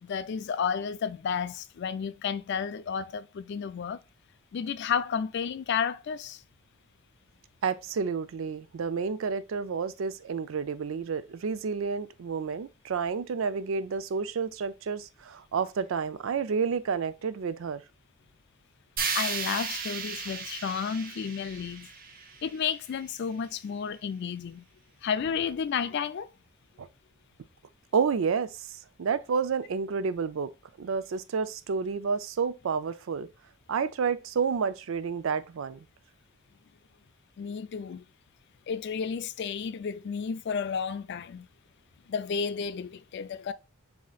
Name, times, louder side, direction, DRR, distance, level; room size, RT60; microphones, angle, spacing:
voice 1, 0.0-4.0 4.5-6.4 19.1-21.9 22.4-24.6 25.0-26.3 37.4-38.0 38.7-41.5 42.1-43.5, left 6 dB, 55° left, 0.3 m, -32 dB
voice 2, 7.6-17.8 26.8-26.9 27.9-30.5 30.8-33.3 33.7-35.8, right 5 dB, 65° right, 0.4 m, -30 dB
sound 1, 19.0-23.0, right 5 dB, 40° right, 0.8 m, -35 dB
7.3 x 2.8 x 2.3 m
head